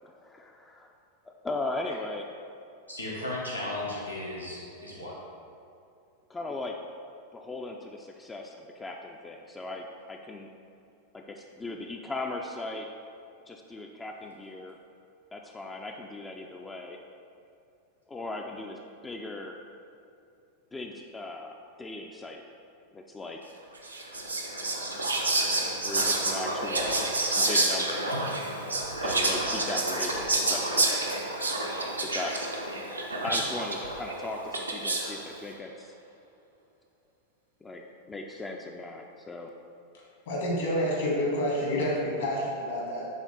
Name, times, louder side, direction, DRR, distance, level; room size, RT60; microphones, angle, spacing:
voice 1, 0.0-0.9 1.3-2.3 6.3-6.7 7.3-10.5 11.1-12.9 13.5-14.8 15.3-17.0 18.1-19.6 20.7-22.4 22.9-23.4 25.2-25.5 25.8-28.3 29.0-31.1 32.0-32.3 33.2-36.0 37.6-37.8 38.1-39.5, left 2 dB, 15° left, 1 dB, 0.4 m, -38 dB
voice 2, 2.9-5.1, left 1 dB, 90° left, -6 dB, 1.3 m, -35 dB
Whispering, 23.8-35.3, right 2 dB, 80° right, 0.6 m, -29 dB
voice 3, 39.9-43.1, equal, 60° left, -3 dB, 1.5 m, -29 dB
7.3 x 3.5 x 3.8 m, 2.6 s
figure-of-eight pair, 90°, 0 cm